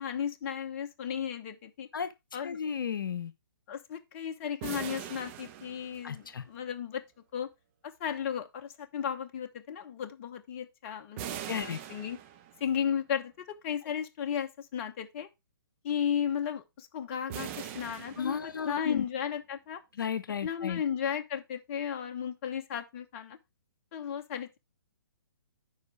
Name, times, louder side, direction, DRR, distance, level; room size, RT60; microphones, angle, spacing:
voice 1, 0.0-1.9 2.3-2.6 3.7-7.0 7.3-7.5 7.8-12.2 12.6-15.3 15.8-19.8 20.4-23.4 23.9-24.6, left 8 dB, 35° left, 0.9 m, -34 dB
voice 2, 2.4-3.3 6.0-6.4 11.5-11.8 18.2-19.1 19.9-20.8, left 7 dB, 65° left, 0.9 m, -33 dB
sound 1, 4.6-6.5 11.2-12.8 17.3-18.9, right 11 dB, 35° right, 1.0 m, -42 dB
9.6 x 5.0 x 3.3 m
figure-of-eight pair, 130°, 12 cm